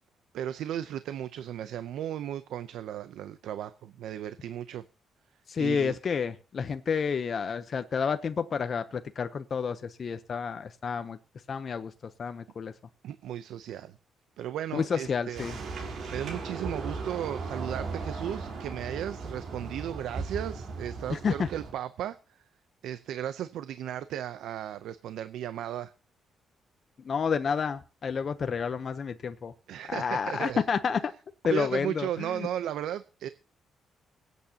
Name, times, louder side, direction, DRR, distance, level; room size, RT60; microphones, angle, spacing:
voice 1, 0.3-4.8 5.6-6.0 13.0-14.0 14.4-15.4 16.1-22.2 22.8-25.9 29.7-30.6 31.4-33.3, right 10 dB, 85° right, 0.6 m, -35 dB
voice 2, 5.5-11.2 11.5-11.9 12.2-12.7 14.7-15.6 21.1-21.5 27.0-29.5 29.9-31.1 31.4-32.5, left 6 dB, 40° left, 0.7 m, -30 dB
sound 1, 15.3-21.7, right 4 dB, 60° right, 3.9 m, -37 dB
23.5 x 8.2 x 2.8 m
cardioid pair, 140°, 0 cm